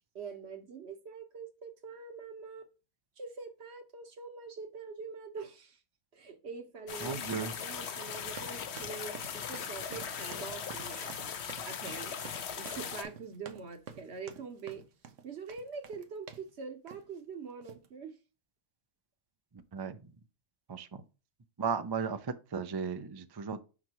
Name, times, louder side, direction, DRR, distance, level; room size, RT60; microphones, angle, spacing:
voice 1, 0.1-2.7 3.2-5.8 6.1-11.3 11.7-14.8 15.2-18.2, right 5 dB, 60° right, 1.3 m, -44 dB
sound 1, 6.9-13.0, left 7 dB, 65° left, 1.0 m, -39 dB
voice 2, 7.0-7.5 19.7-20.0 20.7-21.0 21.6-23.6, right 5 dB, 40° right, 0.3 m, -35 dB
sound 2, 8.3-16.5 16.9-17.2 17.6-17.9, right 7 dB, 85° right, 1.2 m, -50 dB
5.9 x 5.8 x 3.0 m
omnidirectional pair, 1.2 m